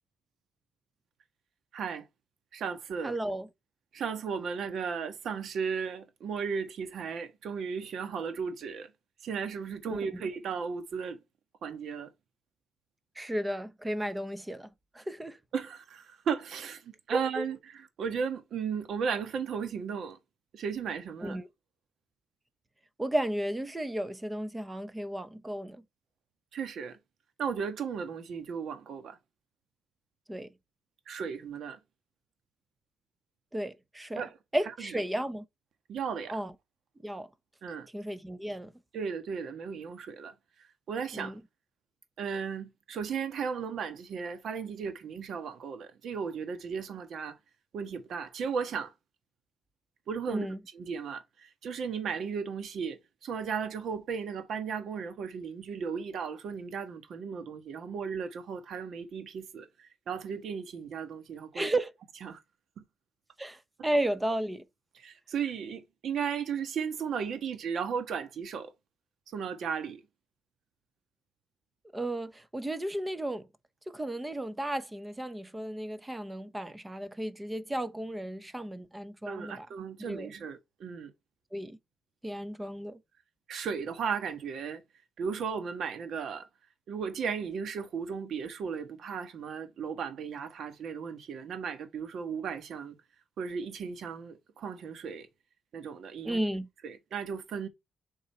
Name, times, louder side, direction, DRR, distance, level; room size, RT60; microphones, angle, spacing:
voice 1, 1.7-2.1 2.5-3.2 3.9-8.9 9.2-11.2 11.6-12.1 15.5-20.2 20.5-21.4 26.5-27.0 27.4-29.2 31.1-31.8 34.2-34.4 35.9-36.4 37.6-37.9 38.9-40.3 40.9-41.4 42.2-47.4 47.7-48.9 50.1-50.5 50.7-61.7 62.2-62.4 62.8-62.9 64.9-68.7 69.3-70.0 79.2-81.1 83.5-84.8 85.2-86.5 86.9-92.9 93.4-95.3 95.7-96.4 96.8-97.7, right 6 dB, 70° right, 1.4 m, -35 dB
voice 2, 3.0-3.5 9.9-10.2 13.2-14.7 14.9-15.4 17.1-17.4 21.2-21.5 23.0-25.8 30.3-30.5 33.5-34.2 34.5-35.4 36.3-36.5 37.0-37.3 37.9-38.7 41.1-41.4 50.3-50.6 61.5-61.9 63.4-64.6 71.9-73.4 73.9-79.7 80.0-80.3 81.5-81.8 82.2-83.0 96.2-96.7, right 1 dB, 15° right, 0.9 m, -34 dB
7.2 x 3.8 x 4.3 m
cardioid pair, 85°, 0 cm